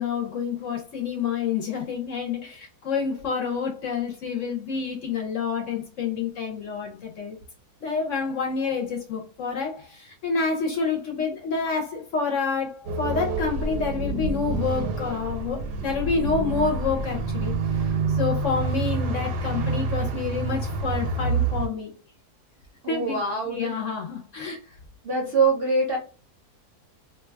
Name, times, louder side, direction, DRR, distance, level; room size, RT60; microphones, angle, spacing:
voice 1, 0.0-7.4 7.8-21.9 22.9-23.2 23.4-24.6, left 5 dB, 65° left, 0.8 m, -28 dB
sound 1, 12.8-21.7, right 4 dB, 85° right, 1.2 m, -27 dB
voice 2, 22.8-23.7 25.0-26.0, right 3 dB, 55° right, 0.7 m, -24 dB
2.6 x 2.2 x 3.3 m
omnidirectional pair, 1.7 m